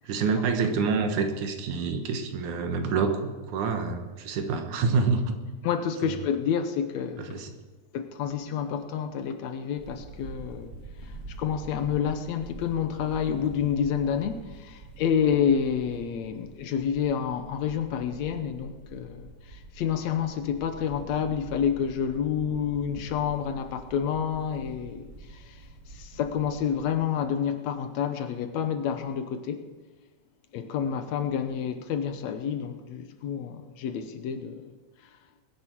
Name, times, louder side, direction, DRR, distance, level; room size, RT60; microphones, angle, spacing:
voice 1, 0.0-5.4 6.0-6.1 7.2-7.5, right 4 dB, 90° right, 2.8 m, -27 dB
voice 2, 5.6-7.4 7.9-10.8 11.4-25.6 25.9-29.7 30.5-34.7, left 8 dB, 70° left, 2.1 m, -29 dB
sound 1, 9.8-26.9, right 3 dB, 25° right, 3.1 m, -46 dB
21.5 x 10.0 x 4.6 m
omnidirectional pair, 3.4 m